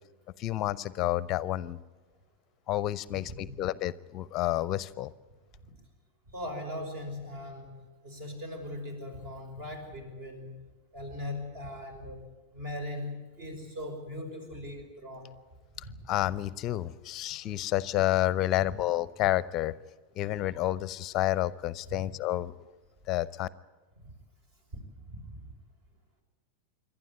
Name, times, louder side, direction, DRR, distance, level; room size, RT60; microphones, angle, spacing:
voice 1, 0.4-1.8 2.7-5.1 16.1-19.7 20.2-22.5 23.1-23.5, left 15 dB, 35° left, 20 dB, 0.6 m, -29 dB
voice 2, 3.1-3.6 6.3-7.8 8.0-10.6 10.9-12.2 12.5-15.3 15.8-15.9 21.9-22.0 24.0-24.1 24.7-24.8 25.1-25.4, left 1 dB, 50° right, 6 dB, 5.2 m, -39 dB
27.5 x 12.0 x 9.9 m, 1.3 s
figure-of-eight pair, 90°, 0 cm